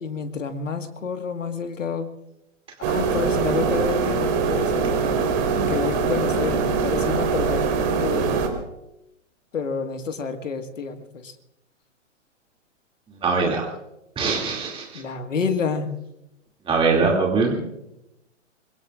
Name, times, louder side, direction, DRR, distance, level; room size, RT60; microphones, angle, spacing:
voice 1, 0.0-2.1 2.8-5.1 5.7-7.7 8.0-8.4 9.5-11.3 14.9-15.9, left 5 dB, 80° left, 7 dB, 1.8 m, -29 dB
sound 1, 2.8-8.5, right 5 dB, 35° right, 3.7 m, -23 dB
voice 2, 13.2-13.7 14.2-15.0 16.7-17.6, right 4 dB, 15° right, 0 dB, 2.5 m, -22 dB
25.5 x 22.0 x 2.5 m, 0.85 s
hypercardioid pair, 125°, 37 cm